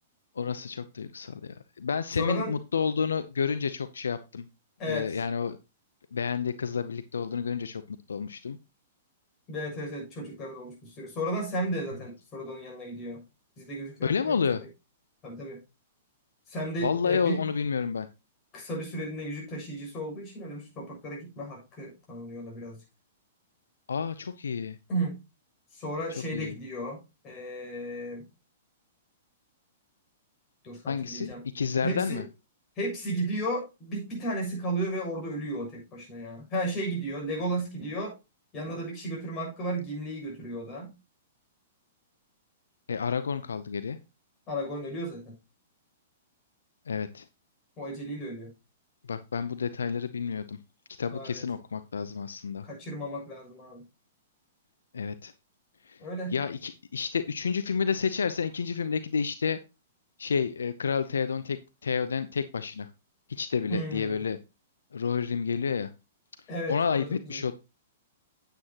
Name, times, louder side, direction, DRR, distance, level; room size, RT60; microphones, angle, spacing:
voice 1, 0.4-4.5 4.9-5.6 6.1-8.6 14.0-14.6 16.8-18.1 23.9-24.8 26.3-26.5 30.9-32.2 42.9-44.0 46.9-47.2 49.1-50.6 51.0-52.7 54.9-55.3 55.9-56.0 56.3-59.6 60.2-62.9 63.3-64.4 64.9-65.9 66.7-67.5, left 6 dB, 85° left, 12 dB, 0.6 m, -30 dB
voice 2, 2.2-2.5 4.8-5.2 9.5-13.2 13.6-14.7 15.2-15.6 16.5-17.4 18.5-22.8 24.9-25.2 25.7-28.3 30.6-31.4 31.8-32.2 32.8-38.2 38.5-40.9 44.5-45.4 47.8-48.5 51.1-51.4 52.6-53.8 56.0-56.4 63.7-64.2 66.5-67.4, right 1 dB, 30° left, -1 dB, 6.8 m, -34 dB
9.3 x 9.1 x 2.9 m, 0.27 s
hypercardioid pair, 120°, 0 cm